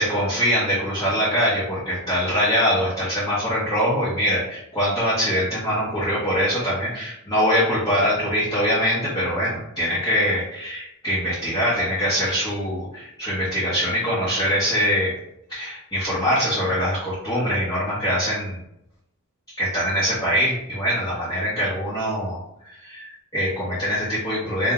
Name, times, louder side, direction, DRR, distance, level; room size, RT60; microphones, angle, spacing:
voice 1, 0.0-15.1 15.5-18.6 19.5-24.7, equal, 15° left, -12 dB, 1.5 m, -23 dB
3.5 x 3.2 x 3.6 m, 0.82 s
head